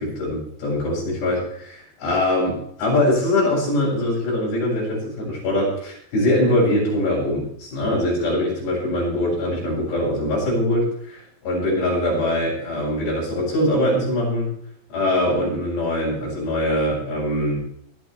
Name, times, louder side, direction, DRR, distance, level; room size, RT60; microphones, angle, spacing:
voice 1, 0.0-14.5 14.9-17.7, left 1 dB, 75° left, -6 dB, 9.7 m, -22 dB
22.0 x 13.0 x 3.4 m, 0.67 s
omnidirectional pair, 4.7 m